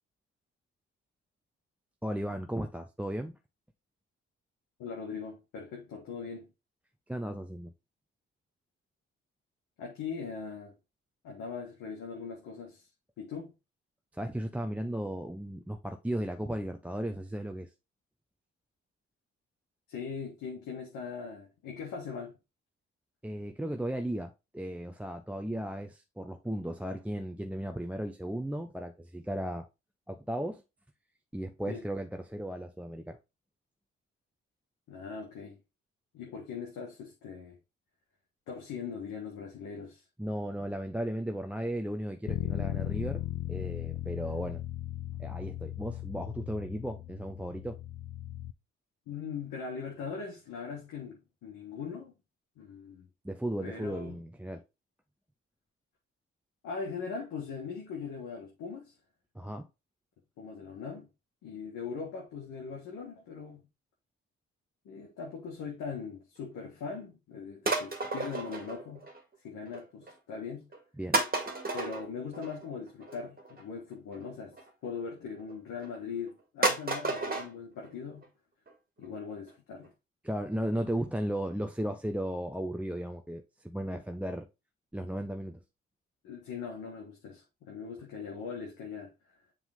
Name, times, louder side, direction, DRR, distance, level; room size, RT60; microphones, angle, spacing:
voice 1, 2.0-3.3 7.1-7.7 14.1-17.7 23.2-29.7 30.1-30.6 31.3-33.2 40.2-43.2 43.5-44.6 45.2-47.8 53.2-54.6 59.3-59.7 71.0-71.2 80.2-84.5 84.9-85.6, right 1 dB, 5° right, 0.7 m, -35 dB
voice 2, 4.8-6.5 9.8-10.7 11.2-12.9 13.2-13.5 19.9-22.4 31.7-31.8 34.9-35.6 36.1-37.6 38.5-40.0 49.1-52.1 52.6-53.1 53.6-54.2 56.6-58.9 60.4-61.1 61.4-63.6 64.8-69.0 69.4-70.6 71.7-74.6 74.8-78.3 79.0-79.9 86.2-89.4, left 5 dB, 70° left, 1.5 m, -40 dB
Bass guitar, 42.3-48.5, left 14 dB, 50° left, 0.5 m, -37 dB
sound 1, 67.6-69.3 69.6-70.1 70.7-70.8 71.1-74.7 75.4-76.0 76.3-76.4 76.6-77.5 77.8-77.9 78.2-78.3 78.7-78.8 79.0-79.1 79.5-79.6 79.8-79.9 80.4-80.5 80.7-80.8, right 2 dB, 30° right, 1.9 m, -33 dB
7.1 x 3.8 x 3.5 m
hypercardioid pair, 40°, 32 cm